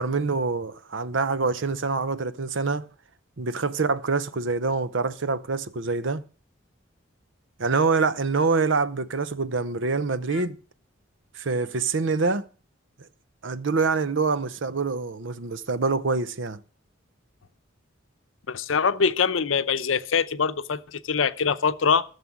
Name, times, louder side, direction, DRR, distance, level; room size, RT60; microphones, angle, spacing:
voice 1, 0.0-2.9 3.4-6.2 7.6-10.6 11.3-12.5 13.4-16.6, right 4 dB, 75° right, 0.7 m, -25 dB
voice 2, 18.5-22.0, left 6 dB, 85° left, 0.7 m, -24 dB
15.0 x 6.7 x 6.0 m
head